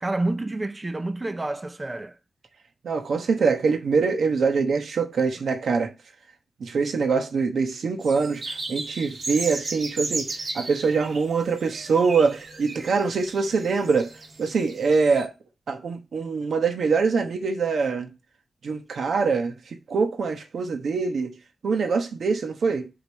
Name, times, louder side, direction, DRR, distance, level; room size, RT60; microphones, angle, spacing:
voice 1, 0.0-2.1, right 2 dB, 25° right, 0.5 m, -28 dB
voice 2, 2.8-5.9 6.6-14.1 14.4-15.3 15.7-18.1 18.6-19.5 19.9-21.3 21.6-22.9, right 5 dB, 90° right, 1.1 m, -24 dB
sound 1, 8.0-15.2, right 3 dB, 60° right, 1.7 m, -35 dB
5.1 x 5.0 x 6.2 m
wide cardioid pair, 120°, 0 cm